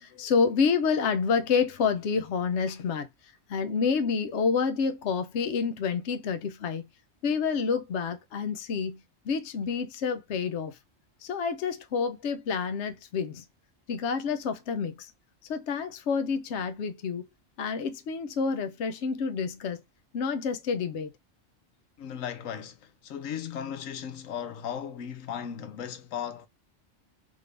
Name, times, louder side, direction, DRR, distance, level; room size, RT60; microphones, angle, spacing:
voice 1, 0.0-3.1 3.5-6.9 7.2-10.8 11.2-13.4 13.9-15.1 15.5-17.3 17.6-19.8 20.1-21.1, left 5 dB, 65° left, 1.0 m, -28 dB
voice 2, 22.0-26.5, left 8 dB, 90° left, 1.1 m, -36 dB
3.7 x 3.6 x 3.3 m
omnidirectional pair, 1.3 m